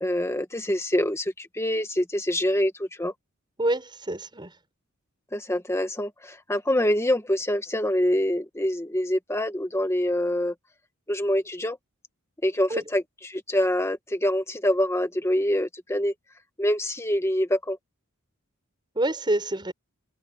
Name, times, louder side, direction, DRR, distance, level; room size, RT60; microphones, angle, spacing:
voice 1, 0.0-3.1 5.3-10.5 11.1-11.8 12.4-16.1 16.6-17.8, left 1 dB, 15° left, 1.8 m, -25 dB
voice 2, 3.6-4.5 12.7-12.8 18.9-19.7, right 1 dB, 20° right, 6.0 m, -27 dB
head